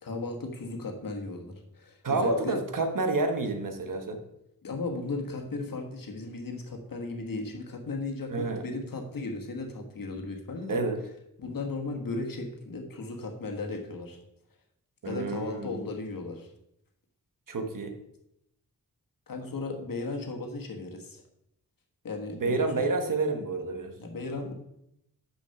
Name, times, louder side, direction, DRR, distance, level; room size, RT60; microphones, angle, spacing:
voice 1, 0.0-2.6 4.6-10.8 11.4-14.2 15.0-16.5 19.3-21.2 22.0-22.8 24.0-24.5, left 3 dB, 75° left, 2 dB, 1.4 m, -36 dB
voice 2, 2.0-4.2 8.3-8.6 10.7-11.0 15.0-15.8 17.5-17.9 22.4-23.9, right 3 dB, 70° right, 5 dB, 1.3 m, -29 dB
6.5 x 6.2 x 5.7 m, 0.80 s
wide cardioid pair, 100°, 34 cm